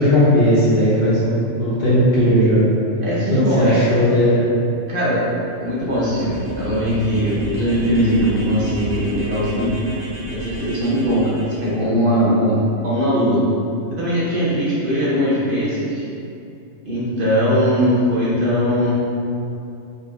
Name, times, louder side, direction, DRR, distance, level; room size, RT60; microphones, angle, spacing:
voice 1, 0.0-2.6 3.3-4.4, equal, 50° left, -10 dB, 1.5 m, -16 dB
voice 2, 3.0-3.8 4.9-5.2 5.6-9.7 10.3-13.4 13.9-16.1 16.8-18.9, equal, 50° right, -8 dB, 0.9 m, -20 dB
sound 1, 5.6-11.7, equal, 90° right, 1.4 m, -31 dB
5.1 x 4.0 x 2.4 m, 2.6 s
omnidirectional pair, 1.3 m